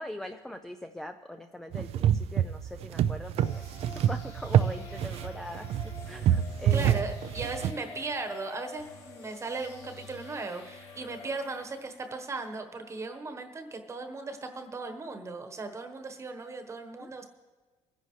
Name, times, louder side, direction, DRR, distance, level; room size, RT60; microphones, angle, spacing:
voice 1, 0.0-3.6 4.0-5.8 6.0-7.0 17.0-17.1, left 1 dB, 5° left, 6 dB, 0.4 m, -41 dB
sound 1, 1.7-7.7, right 10 dB, 60° right, 0.5 m, -27 dB
sound 2, 3.4-12.2, left 4 dB, 75° left, 5.2 m, -47 dB
voice 2, 6.7-17.3, right 3 dB, 25° right, 5 dB, 1.2 m, -37 dB
21.5 x 10.5 x 3.3 m, 1.3 s
cardioid pair, 140°, 12 cm